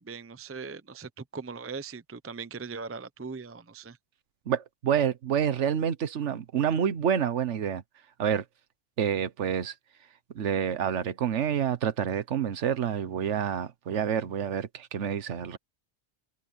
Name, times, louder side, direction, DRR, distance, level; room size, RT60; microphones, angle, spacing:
voice 1, 0.0-4.0, right 4 dB, 20° right, 0.4 m, -40 dB
voice 2, 4.5-7.8 8.2-8.4 9.0-9.7 10.3-15.6, right 8 dB, 80° right, 1.3 m, -28 dB
omnidirectional pair, 1.2 m